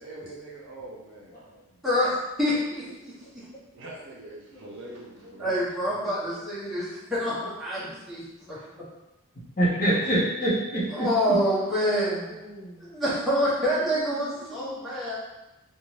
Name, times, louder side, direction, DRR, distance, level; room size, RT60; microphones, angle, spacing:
voice 1, 0.0-1.4 3.7-5.6 6.3-6.4 8.5-8.7 9.8-10.3, right 2 dB, 55° right, -4 dB, 0.6 m, -43 dB
voice 2, 2.4-3.4 5.4-8.2 8.5-8.6 10.9-12.3 12.8-15.2, equal, ahead, -11 dB, 0.8 m, -27 dB
voice 3, 9.6-11.4 11.9-12.8 14.4-14.8, right 1 dB, 40° left, -6 dB, 0.7 m, -27 dB
2.6 x 2.2 x 3.1 m, 0.99 s
head